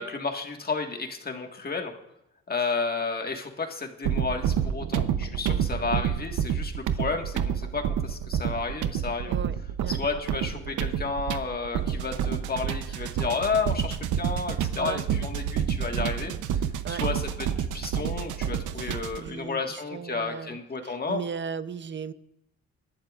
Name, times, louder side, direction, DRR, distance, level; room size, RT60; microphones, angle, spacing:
voice 1, 0.0-1.9 2.5-9.3 9.9-16.6 16.9-21.2, left 4 dB, 30° left, 3 dB, 1.8 m, -32 dB
sound 1, 4.0-19.3, right 9 dB, 80° right, 0.8 m, -29 dB
voice 2, 5.5-6.0 9.2-10.0 12.9-13.2 14.7-15.0 16.8-17.0 18.7-22.1, right 6 dB, 40° right, 14 dB, 0.7 m, -37 dB
23.5 x 11.5 x 2.5 m, 0.86 s
cardioid pair, 90°, 30 cm